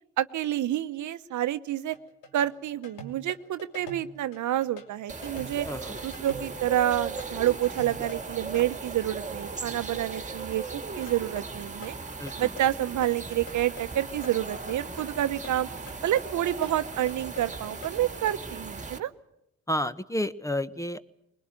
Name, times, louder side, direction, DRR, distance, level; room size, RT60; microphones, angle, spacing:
voice 1, 0.2-1.9 2.3-5.7 6.0-12.0 12.4-15.7 16.0-19.1, right 12 dB, 70° right, 12 dB, 0.9 m, -28 dB
sound 1, 1.9-8.7 11.1-18.4, left 1 dB, 90° left, 2.9 m, -46 dB
sound 2, 5.1-19.0, right 4 dB, 25° right, 2.1 m, -38 dB
voice 2, 5.6-6.0 12.2-12.5 19.7-21.0, left 1 dB, 10° left, 13 dB, 1.2 m, -31 dB
21.5 x 20.5 x 9.1 m, 0.84 s
supercardioid pair, 65°, 31 cm